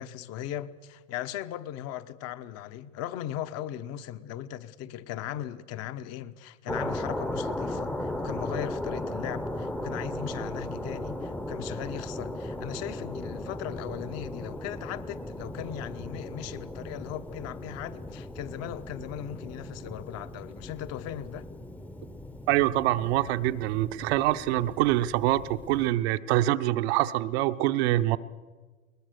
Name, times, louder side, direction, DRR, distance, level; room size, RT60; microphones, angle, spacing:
voice 1, 0.0-21.5, left 11 dB, 40° left, 1.1 m, -38 dB
sound 1, 6.7-25.9, left 1 dB, 5° left, 0.9 m, -37 dB
voice 2, 22.5-28.2, right 15 dB, 50° right, 0.9 m, -25 dB
21.5 x 20.0 x 6.7 m
hypercardioid pair, 100°, 41 cm